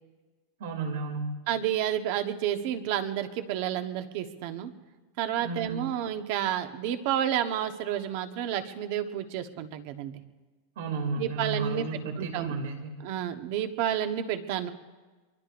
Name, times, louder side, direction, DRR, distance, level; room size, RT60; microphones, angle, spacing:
voice 1, 0.6-1.4 5.4-5.9 10.8-13.0, right 3 dB, 80° right, 3 dB, 2.5 m, -33 dB
voice 2, 1.5-4.7 5.2-10.2 11.2-12.5 13.0-14.7, right 10 dB, 50° right, 8 dB, 1.1 m, -30 dB
24.0 x 23.5 x 2.6 m, 1.3 s
supercardioid pair, 155°, 0 cm